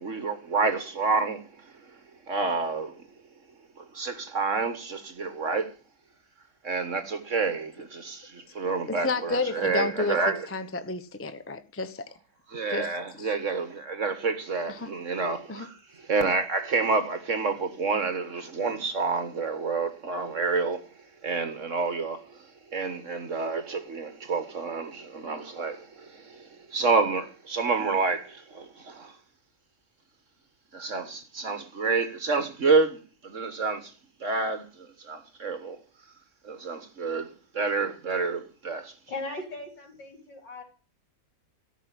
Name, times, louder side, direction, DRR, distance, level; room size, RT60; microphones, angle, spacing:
voice 1, 0.0-1.5 2.3-2.9 3.8-5.7 6.6-10.5 12.5-20.9 21.2-22.4 22.7-29.1 30.7-33.9 34.2-35.8 36.4-38.9, right 4 dB, 45° right, 1.6 m, -29 dB
voice 2, 8.9-10.2 10.5-12.0 12.7-12.9 13.2-13.3 14.7-14.9 15.5-15.7, left 3 dB, 10° left, 0.7 m, -31 dB
voice 3, 39.1-40.6, left 2 dB, 75° left, 4.7 m, -38 dB
14.0 x 6.2 x 9.9 m
omnidirectional pair, 1.9 m